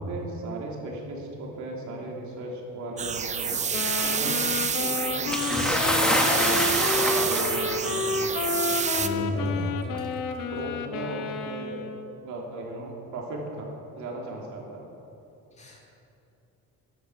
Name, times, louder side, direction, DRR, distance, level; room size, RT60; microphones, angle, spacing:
voice 1, 0.0-3.6 4.0-4.4 4.7-6.6 7.0-8.6 9.1-9.5 10.4-11.8 12.2-13.7 13.9-14.9, right 2 dB, 60° right, -1 dB, 3.2 m, -37 dB
sound 1, 3.0-9.1, right 6 dB, 20° right, 0.5 m, -28 dB
sound 2, 3.7-12.1, left 4 dB, 85° left, 1.2 m, -30 dB
Bathtub (filling or washing) / Splash splatter, 5.3-7.9 8.8-8.9 9.9-10.0, equal, ahead, 1.0 m, -26 dB
voice 2, 9.0-9.7 15.6-15.8, left 1 dB, 20° left, -2 dB, 2.6 m, -31 dB
14.5 x 10.5 x 6.3 m, 2.9 s
cardioid pair, 160°, 33 cm